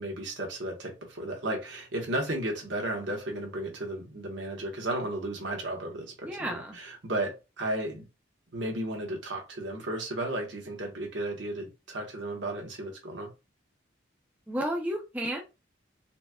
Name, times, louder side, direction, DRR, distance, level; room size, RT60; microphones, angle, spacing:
voice 1, 0.0-8.1 8.5-13.3, right 1 dB, 65° right, 1.1 m, -34 dB
voice 2, 6.2-6.8 14.5-15.4, right 1 dB, 10° right, 0.5 m, -32 dB
4.1 x 2.3 x 2.2 m
head